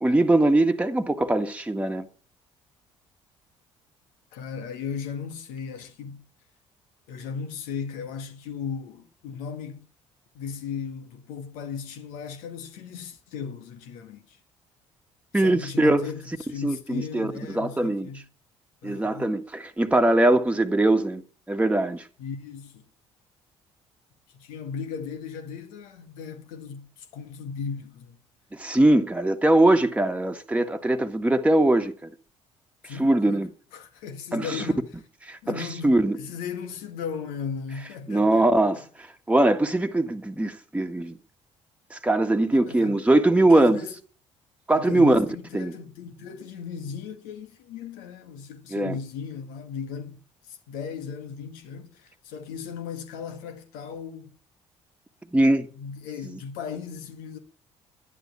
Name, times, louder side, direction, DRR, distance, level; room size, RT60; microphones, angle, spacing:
voice 1, 0.0-2.0 15.3-16.0 16.6-18.1 18.8-21.2 21.5-22.1 28.5-32.1 32.8-33.5 34.3-34.6 35.2-36.2 38.1-41.2 41.9-43.8 44.7-45.3 45.5-45.7 48.7-49.0 55.3-55.7 56.2-56.4, right 1 dB, 10° right, 1.7 m, -21 dB
voice 2, 4.3-6.2 7.1-9.9 10.3-14.4 15.3-18.2 18.8-19.4 22.2-22.8 24.3-28.2 32.8-34.8 35.4-38.5 42.5-43.0 43.4-43.9 44.7-50.2 50.4-54.3 55.7-57.4, left 6 dB, 65° left, 2.0 m, -36 dB
11.5 x 11.0 x 8.5 m
figure-of-eight pair, 50°, 15 cm